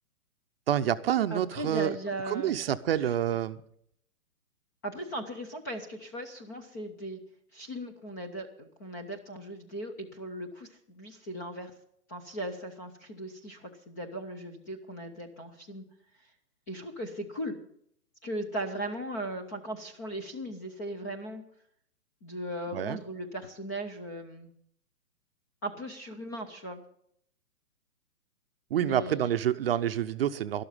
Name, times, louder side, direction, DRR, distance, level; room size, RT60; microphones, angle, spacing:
voice 1, 0.7-1.9 2.3-3.6 22.7-23.0 28.7-30.6, right 10 dB, 40° right, 0.7 m, -28 dB
voice 2, 1.3-2.6 4.8-7.2 7.5-11.7 12.1-15.8 16.7-17.6 18.2-21.4 22.2-24.5 25.6-26.8 28.8-29.3, right 1 dB, 15° left, 0.5 m, -38 dB
12.5 x 12.0 x 5.5 m
hypercardioid pair, 140°, 45 cm